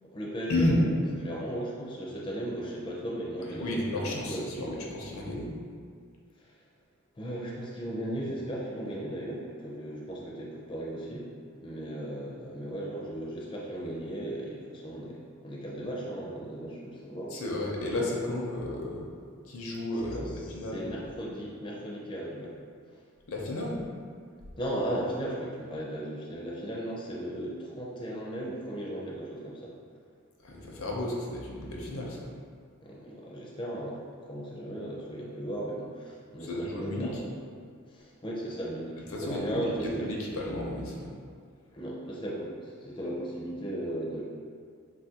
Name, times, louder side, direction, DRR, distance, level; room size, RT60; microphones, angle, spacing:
voice 1, 0.0-4.8 6.4-6.6 7.1-11.3 11.6-17.4 20.1-22.5 22.9-23.0 24.6-29.7 32.8-37.3 37.9-40.1 41.7-44.2, right 1 dB, 25° left, -5 dB, 0.4 m, -36 dB
voice 2, 3.6-5.5 17.3-19.1 19.5-20.9 23.3-23.8 30.4-32.3 36.4-37.2 39.1-41.1, left 1 dB, 80° left, -2 dB, 0.6 m, -32 dB
3.9 x 2.4 x 2.8 m, 2.2 s
head